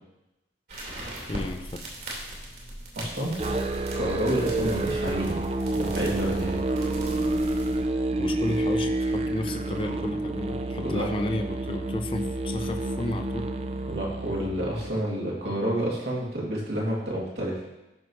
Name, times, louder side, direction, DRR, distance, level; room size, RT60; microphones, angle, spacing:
sound 1, 0.7-7.8, right 1 dB, 60° right, 3.0 m, -40 dB
voice 1, 1.3-1.8 8.2-13.5, left 1 dB, 30° left, 5 dB, 0.5 m, -32 dB
voice 2, 3.0-3.3 4.0-5.4 5.7-6.6 10.8-11.1 13.9-17.6, right 1 dB, 80° right, -4 dB, 2.5 m, -29 dB
Musical instrument, 3.4-15.0, right 2 dB, 35° right, 0.5 m, -29 dB
14.0 x 5.6 x 3.2 m, 0.96 s
head